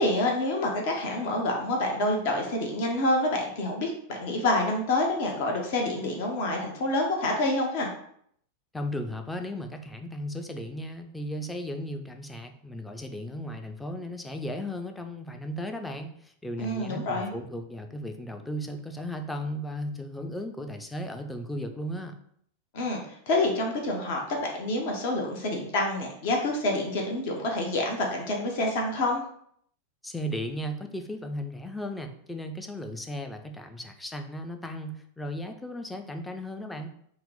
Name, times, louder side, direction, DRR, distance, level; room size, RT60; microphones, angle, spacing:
voice 1, 0.0-7.9 16.6-17.3 22.7-29.2, left 1 dB, 50° left, 1 dB, 0.7 m, -27 dB
voice 2, 8.7-22.2 30.0-36.9, equal, 5° left, 6 dB, 0.4 m, -36 dB
4.2 x 2.0 x 3.8 m, 0.66 s
figure-of-eight pair, 90°, 0 cm